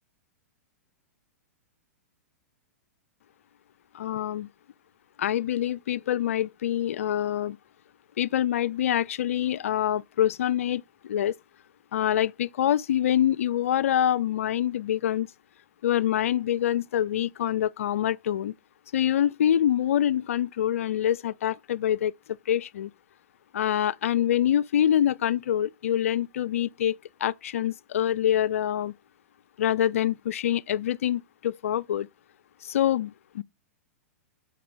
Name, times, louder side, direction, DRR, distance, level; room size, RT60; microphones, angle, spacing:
voice 1, 3.9-4.5 5.2-7.6 8.2-11.3 11.9-15.3 15.8-18.5 18.9-22.1 22.5-22.9 23.5-27.0 27.2-28.9 29.6-32.1 32.6-33.4, left 11 dB, 65° left, 0.4 m, -25 dB
5.8 x 4.7 x 4.9 m
figure-of-eight pair, 105°, 8 cm